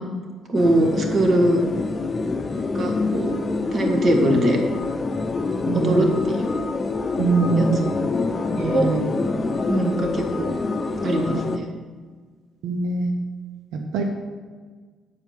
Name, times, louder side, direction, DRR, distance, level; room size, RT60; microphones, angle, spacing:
sound 1, 0.5-11.6, left 3 dB, 25° left, 0.7 m, -26 dB
voice 1, 0.5-1.6 2.7-3.3 3.7-4.6 5.7-6.5 7.6-7.9 8.7-8.9 9.7-10.5 11.0-11.6, right 1 dB, 45° right, 2 dB, 1.7 m, -21 dB
voice 2, 5.7-6.0 7.2-7.8 8.5-9.0 12.6-13.1 13.9-14.0, right 4 dB, 85° right, 3 dB, 0.9 m, -22 dB
8.9 x 4.7 x 7.4 m, 1.5 s
cardioid pair, 110°, 0 cm